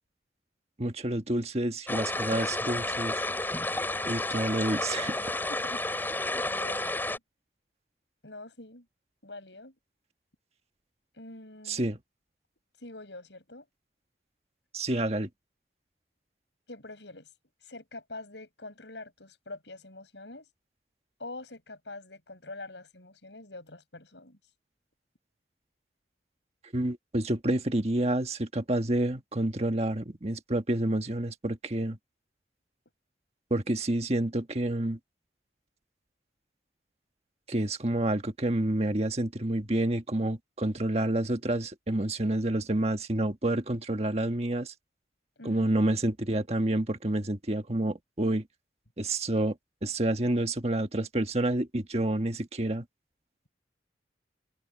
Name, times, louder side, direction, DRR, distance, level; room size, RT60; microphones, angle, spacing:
voice 1, 0.8-3.2 4.1-5.3 11.7-12.0 14.7-15.3 26.7-32.0 33.5-35.0 37.5-44.7 45.4-48.5 49.0-52.8, right 1 dB, 35° right, 1.5 m, -29 dB
sound 1, 1.9-7.2, left 2 dB, 10° left, 5.5 m, -31 dB
voice 2, 5.5-6.2 6.5-7.2 8.2-8.9 9.2-9.7 11.1-11.8 12.8-13.7 16.7-17.3 17.6-20.5 21.2-24.4 45.4-45.7, left 2 dB, 75° left, 7.3 m, -45 dB
head